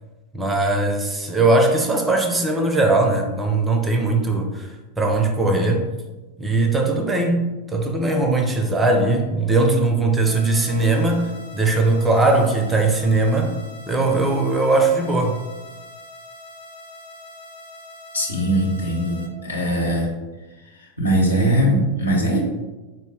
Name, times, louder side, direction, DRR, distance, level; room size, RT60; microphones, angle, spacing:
voice 1, 0.3-4.7 5.0-5.8 6.4-13.5 13.9-15.4, right 2 dB, 10° right, 4 dB, 0.4 m, -19 dB
sound 1, 10.3-19.3, left 1 dB, 50° left, 0.6 m, -42 dB
voice 2, 18.1-20.1 21.0-22.4, right 1 dB, 80° left, -2 dB, 0.8 m, -20 dB
4.1 x 2.1 x 3.4 m, 1.2 s
figure-of-eight pair, 90°, 0 cm